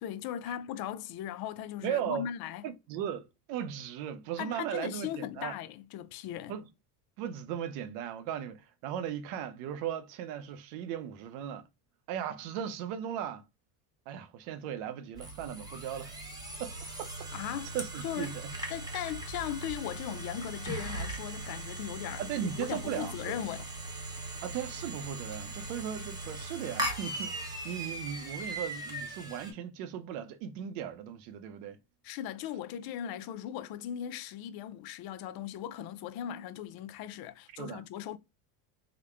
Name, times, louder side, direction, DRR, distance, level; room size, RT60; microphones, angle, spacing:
voice 1, 0.0-2.6 4.4-6.6 17.3-17.8 18.0-18.3 18.7-22.2 22.6-23.7 32.0-38.2, left 11 dB, 55° left, 0.5 m, -38 dB
voice 2, 1.8-2.2 2.6-5.6 6.5-6.7 7.2-11.7 12.1-13.5 14.1-16.1 16.6-17.1 17.7-18.5 22.2-23.3 24.4-31.8 37.5-37.8, right 9 dB, 80° right, 0.7 m, -37 dB
sound 1, 15.1-29.5, right 2 dB, 10° right, 0.9 m, -39 dB
3.9 x 2.1 x 3.4 m
supercardioid pair, 105°, 43 cm